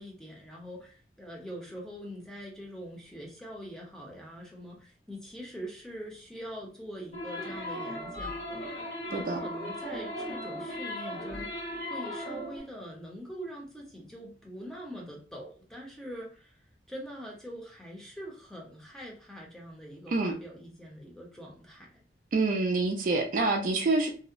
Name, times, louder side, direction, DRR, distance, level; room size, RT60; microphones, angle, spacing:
voice 1, 0.0-16.6 16.9-22.0, equal, 5° left, -2 dB, 0.6 m, -43 dB
sound 1, 7.1-12.6, equal, 50° left, 1.1 m, -37 dB
voice 2, 22.3-24.1, right 3 dB, 50° right, 3 dB, 0.4 m, -27 dB
2.7 x 2.0 x 2.4 m, 0.39 s
head